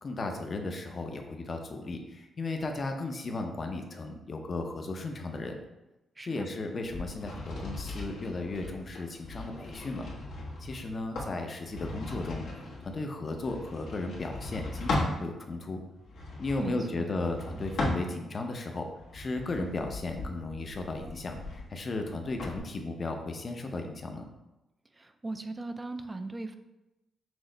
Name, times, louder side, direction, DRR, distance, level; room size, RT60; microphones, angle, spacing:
voice 1, 0.0-5.6 6.2-10.1 10.6-12.5 12.8-15.8 16.4-18.9 19.1-24.2, left 2 dB, 35° left, 4 dB, 0.6 m, -35 dB
sound 1, 6.8-15.2 16.0-18.5 19.0-22.6, left 2 dB, 80° left, 1.1 m, -37 dB
voice 2, 16.6-17.1 25.0-26.6, right 2 dB, 20° right, 8 dB, 0.3 m, -38 dB
6.1 x 2.1 x 3.8 m, 0.96 s
cardioid pair, 125°, 0 cm